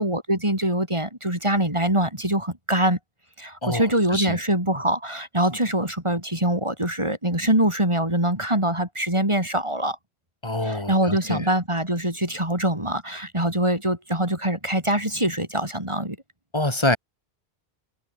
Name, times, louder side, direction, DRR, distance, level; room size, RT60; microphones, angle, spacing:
voice 1, 0.0-3.0 3.4-10.0 10.6-16.2, right 1 dB, 25° right, 4.8 m, -24 dB
voice 2, 3.6-4.4 10.4-11.5 16.5-17.0, left 1 dB, 25° left, 2.9 m, -26 dB
omnidirectional pair, 1.1 m